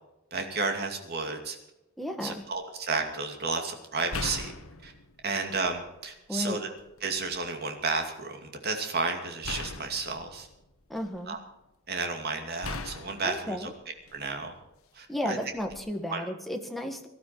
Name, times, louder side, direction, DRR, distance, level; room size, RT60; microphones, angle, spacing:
voice 1, 0.3-1.6 2.2-4.5 4.8-4.9 5.2-6.7 7.0-10.5 11.3-11.4 11.9-13.7 14.1-14.5 15.0-15.4 16.1-16.3, right 4 dB, 50° right, 4 dB, 2.5 m, -32 dB
voice 2, 2.0-2.4 6.3-6.6 10.9-11.4 13.2-13.7 15.1-17.1, left 1 dB, ahead, 3 dB, 1.5 m, -33 dB
sound 1, 2.5-2.6 4.1-5.9 6.4-7.4 9.4-11.4 12.6-14.5 15.6-15.8, left 3 dB, 75° left, 1.2 m, -40 dB
18.0 x 12.5 x 4.5 m, 0.94 s
head